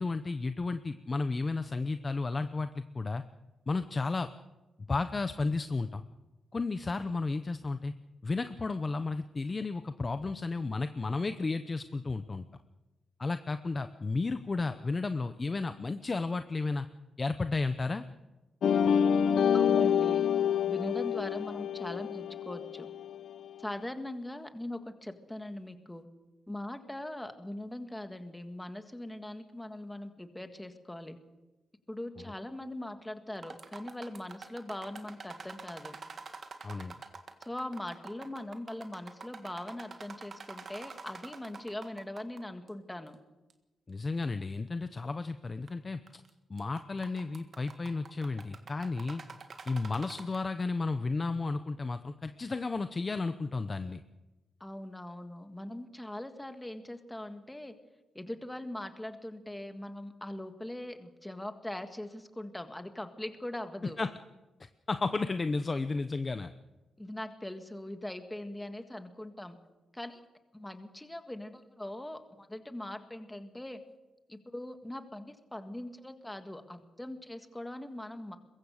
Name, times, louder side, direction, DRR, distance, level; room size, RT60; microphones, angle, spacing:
voice 1, 0.0-3.2 3.7-4.3 4.9-6.0 6.5-7.9 8.2-12.4 13.2-16.9 17.2-18.0 36.6-37.0 43.9-46.0 46.5-49.2 49.7-54.0 64.0-64.1 64.9-66.5, left 3 dB, 25° left, 10 dB, 0.7 m, -33 dB
sound 1, 18.6-23.3, left 8 dB, 60° left, 0.7 m, -27 dB
voice 2, 19.5-20.3 20.7-22.9 23.6-26.1 26.5-31.2 31.9-36.0 37.4-43.2 54.6-57.8 58.2-64.0 67.0-69.6 69.9-70.2 70.5-73.8 74.3-78.4, left 1 dB, 5° left, 7 dB, 1.7 m, -41 dB
sound 2, 33.3-42.4 42.7-42.8 43.5-43.6 44.2-44.3 45.5-45.7 46.1-46.3 46.6-50.6, right 4 dB, 40° right, 1.7 m, -47 dB
22.5 x 22.5 x 6.5 m, 1.1 s
wide cardioid pair, 165°, 0 cm